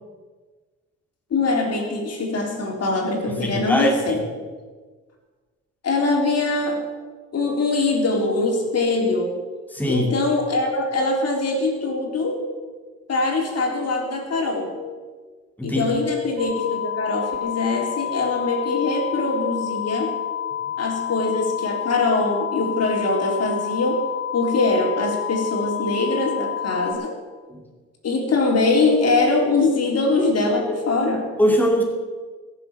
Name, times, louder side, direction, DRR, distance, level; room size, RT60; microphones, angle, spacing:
voice 1, 1.3-4.2 5.8-6.8 7.3-9.3 9.9-12.5 13.1-14.7 15.6-20.1 20.8-24.0 24.3-27.1 28.0-31.3, left 3 dB, 55° left, 1 dB, 3.8 m, -22 dB
voice 2, 3.4-4.2 9.7-10.1 15.6-15.8 27.5-27.6 31.4-31.8, equal, 5° left, 1 dB, 2.7 m, -21 dB
sound 1, 16.4-26.9, left 10 dB, 20° right, 3.7 m, -29 dB
21.0 x 7.1 x 7.3 m, 1.4 s
cardioid pair, 90°, 30 cm